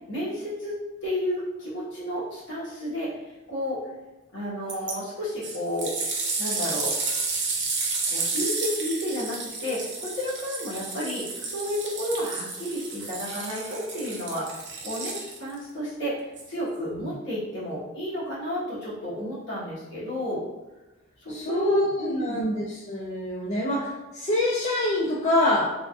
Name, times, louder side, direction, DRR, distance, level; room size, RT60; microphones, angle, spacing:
voice 1, 0.1-0.7 1.0-3.1 3.5-3.8 4.3-5.9 6.4-6.9 8.1-20.4 21.2-22.5, equal, 55° left, -8 dB, 1.2 m, -31 dB
sound 1, 4.7-4.9 5.4-15.6 16.4-16.5, right 4 dB, 55° right, 0.5 m, -31 dB
voice 2, 21.3-25.7, left 1 dB, 30° left, -5 dB, 0.4 m, -26 dB
3.4 x 2.4 x 2.3 m, 1.1 s
head